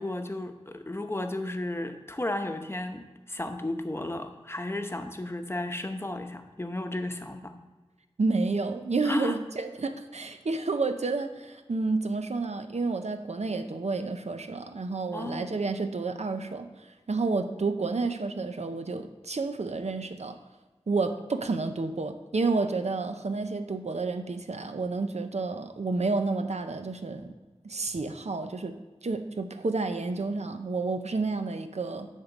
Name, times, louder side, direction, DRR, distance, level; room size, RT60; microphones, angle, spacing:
voice 1, 0.0-7.5 9.0-9.4 15.1-15.6, left 1 dB, 20° left, 6 dB, 0.8 m, -34 dB
voice 2, 8.2-20.4 20.9-27.3 27.6-28.8 29.0-32.1, right 3 dB, 85° right, 8 dB, 0.7 m, -30 dB
10.5 x 3.7 x 7.1 m, 1.3 s
wide cardioid pair, 60°, 11 cm